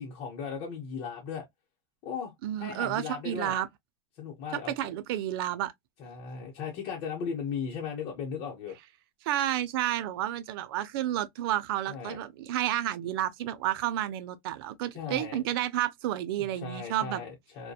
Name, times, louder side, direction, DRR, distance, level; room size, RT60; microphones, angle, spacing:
voice 1, 0.0-1.5 2.0-2.3 2.6-3.6 4.2-4.9 6.0-8.8 11.9-12.2 14.9-15.4 16.4-17.7, left 6 dB, 50° left, 0.8 m, -37 dB
voice 2, 2.4-3.7 4.7-5.7 9.2-17.2, right 12 dB, 80° right, 0.4 m, -31 dB
2.7 x 2.2 x 2.2 m
supercardioid pair, 145°, 12 cm